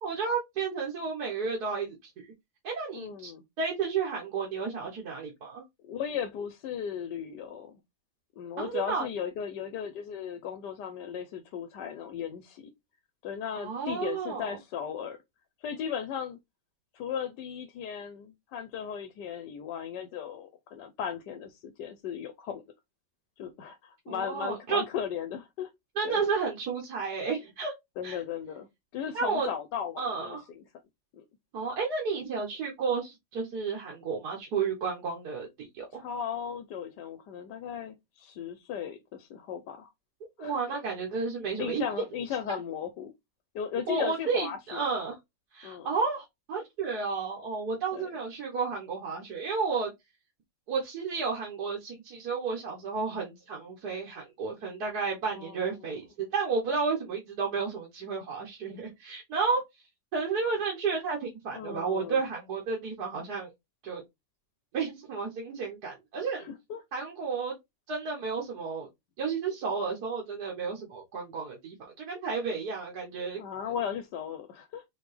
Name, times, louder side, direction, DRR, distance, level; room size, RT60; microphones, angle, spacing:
voice 1, 0.0-2.3 2.6-3.3 3.6-5.6 8.6-9.1 13.6-14.6 24.1-24.8 26.0-27.7 28.0-28.2 29.1-29.5 30.0-30.4 31.5-36.0 40.4-41.8 43.9-45.2 45.5-49.9 50.7-59.6 60.1-63.5 63.8-64.0 64.7-66.5 66.9-67.6 67.9-68.9 69.2-73.4, right 5 dB, 65° right, 1.7 m, -32 dB
voice 2, 2.9-3.4 5.8-7.8 8.4-12.7 13.2-15.2 15.6-16.4 16.9-22.6 23.4-25.7 26.0-26.2 28.0-28.7 28.9-30.6 31.1-31.2 35.9-39.9 40.4-40.8 41.6-43.1 43.5-44.8 45.6-45.9 47.9-48.1 55.3-56.0 61.5-62.2 66.4-66.8 73.4-74.8, left 8 dB, 75° left, 1.3 m, -36 dB
4.6 x 3.5 x 3.3 m
omnidirectional pair, 1.9 m